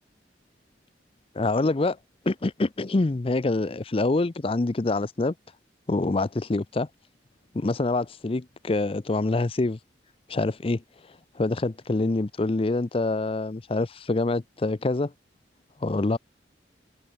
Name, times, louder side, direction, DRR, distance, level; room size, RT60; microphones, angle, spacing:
voice 1, 1.3-2.0 2.3-5.3 5.9-6.9 7.5-9.8 10.3-10.8 11.4-15.1 15.8-16.2, left 2 dB, 30° left, 0.5 m, -25 dB
head